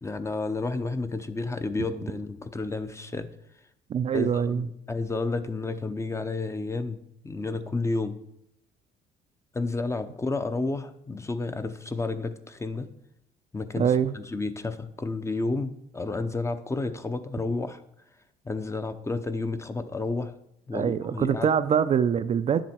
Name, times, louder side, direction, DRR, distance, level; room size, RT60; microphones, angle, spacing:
voice 1, 0.0-3.3 4.1-7.0 7.2-8.2 9.5-12.9 13.5-17.8 18.4-20.3 20.7-21.5, left 3 dB, 15° left, 10 dB, 0.7 m, -31 dB
voice 2, 3.9-4.7 13.8-14.1 20.7-22.6, right 8 dB, 40° right, 11 dB, 0.4 m, -24 dB
10.0 x 7.5 x 4.3 m, 0.77 s
cardioid pair, 110°, 17 cm